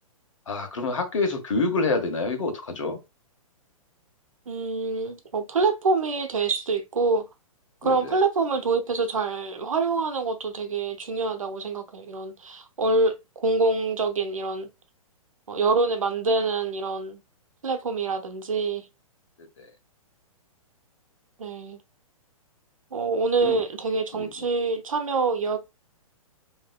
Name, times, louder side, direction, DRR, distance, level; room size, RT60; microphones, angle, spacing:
voice 1, 0.5-3.0 7.8-8.2 19.6-19.7 23.4-23.6 24.1-24.3, left 3 dB, 60° left, 1.4 m, -27 dB
voice 2, 4.5-7.3 7.8-14.7 15.5-17.2 17.6-18.9 21.4-21.8 22.9-25.6, right 3 dB, 70° right, 1.0 m, -26 dB
7.5 x 3.2 x 2.3 m
figure-of-eight pair, 115°, 18 cm